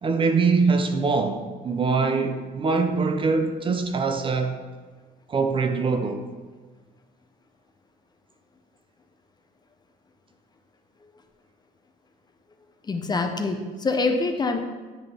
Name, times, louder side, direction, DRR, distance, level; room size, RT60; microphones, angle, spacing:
voice 1, 0.0-4.6 5.3-6.2, right 4 dB, 30° right, 0.5 m, -23 dB
voice 2, 12.8-14.6, left 3 dB, 25° left, 0.6 m, -25 dB
8.9 x 3.7 x 3.3 m
cardioid pair, 110°, 17 cm